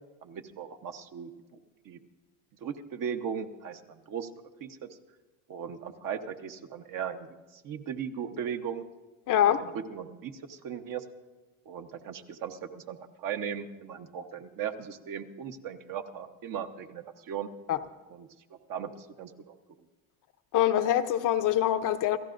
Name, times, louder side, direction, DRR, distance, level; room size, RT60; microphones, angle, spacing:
voice 1, 0.2-1.3 1.8-2.0 2.6-4.3 4.6-4.8 5.5-8.8 9.4-11.0 11.6-17.5 18.1-19.6, right 8 dB, 50° right, 1.2 m, -38 dB
voice 2, 9.3-9.7 17.7-17.8 20.5-22.2, left 11 dB, 50° left, 0.8 m, -24 dB
29.5 x 14.5 x 2.6 m
supercardioid pair, 105°, 41 cm